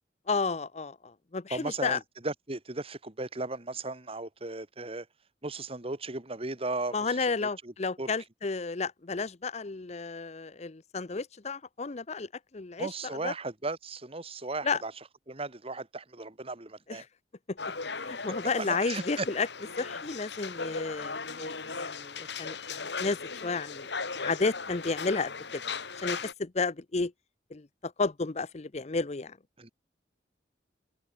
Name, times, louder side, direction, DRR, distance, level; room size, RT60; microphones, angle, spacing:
voice 1, 0.3-2.0 6.9-13.3 14.6-14.8 16.9-17.1 17.5-17.6 18.0-19.5 19.8-23.9 24.2-25.6 26.0-27.1 27.5-29.4, left 4 dB, 40° left, 0.7 m, -32 dB
voice 2, 1.5-5.1 5.4-7.7 8.0-8.1 12.8-14.9 15.3-17.0 18.6-19.3 29.6-29.7, right 2 dB, 30° right, 1.8 m, -36 dB
sound 1, 17.6-26.3, left 4 dB, 70° left, 2.8 m, -37 dB
head